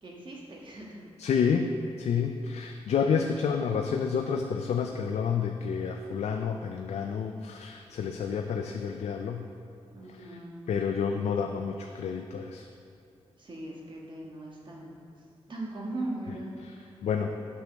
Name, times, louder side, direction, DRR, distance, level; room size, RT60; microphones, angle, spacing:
voice 1, 0.0-1.0 9.9-10.6 13.4-15.0 15.5-16.9, right 2 dB, 45° right, -3 dB, 1.4 m, -39 dB
voice 2, 1.2-1.7 2.0-9.5 10.1-10.4 10.7-12.7 16.6-16.7 17.0-17.3, left 6 dB, 80° left, 4 dB, 0.4 m, -29 dB
8.1 x 6.2 x 3.4 m, 2.4 s
wide cardioid pair, 95°, 11 cm